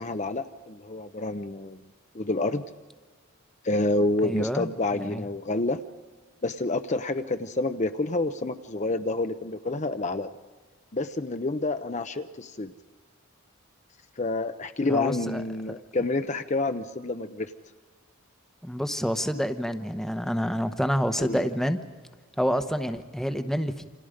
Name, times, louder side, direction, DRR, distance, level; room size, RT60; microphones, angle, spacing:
voice 1, 0.0-1.8 2.1-2.6 3.6-5.8 6.4-10.3 10.9-12.7 14.2-17.5 21.2-21.5, left 2 dB, 35° left, 8 dB, 0.7 m, -28 dB
voice 2, 4.2-5.3 14.9-15.4 18.6-21.8 22.4-23.8, equal, ahead, 8 dB, 1.0 m, -28 dB
29.0 x 27.0 x 5.1 m, 1.4 s
head